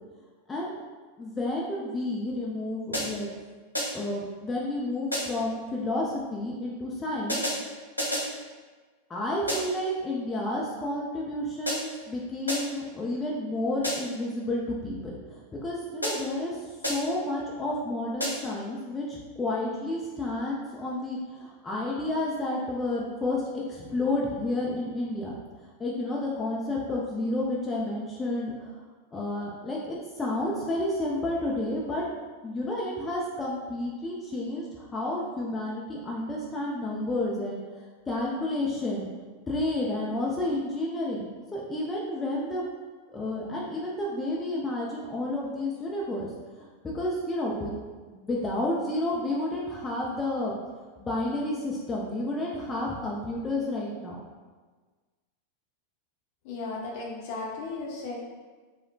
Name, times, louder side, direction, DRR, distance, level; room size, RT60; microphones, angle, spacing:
voice 1, 1.2-3.3 3.9-7.4 9.1-15.1 15.5-16.6 16.9-25.3 25.8-28.7 29.1-32.0 32.4-37.6 38.1-39.1 39.5-42.6 43.1-46.3 46.6-47.7 48.1-50.5 51.0-54.2, left 1 dB, 15° left, -4 dB, 0.5 m, -31 dB
sound 1, 2.9-3.4 3.7-4.2 5.1-5.5 7.3-8.4 9.5-9.9 11.7-12.1 12.5-12.9 13.8-14.3 16.0-16.4 16.8-17.3 18.2-18.6, equal, 90° right, 0.8 m, -32 dB
voice 2, 56.4-58.1, left 3 dB, 45° left, -3 dB, 0.8 m, -35 dB
4.7 x 2.1 x 2.3 m, 1.4 s
figure-of-eight pair, 90°, 0 cm